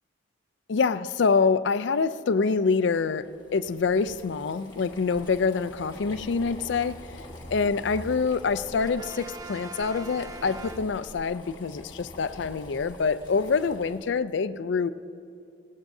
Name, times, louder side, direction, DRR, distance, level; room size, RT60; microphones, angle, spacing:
voice 1, 0.7-7.0 7.5-14.9, left 5 dB, 65° left, 0.4 m, -26 dB
Boiling, 2.9-14.1, left 1 dB, 20° left, 1.7 m, -45 dB
Brass instrument, 8.8-11.4, right 3 dB, 20° right, 0.3 m, -43 dB
19.5 x 17.5 x 2.7 m
head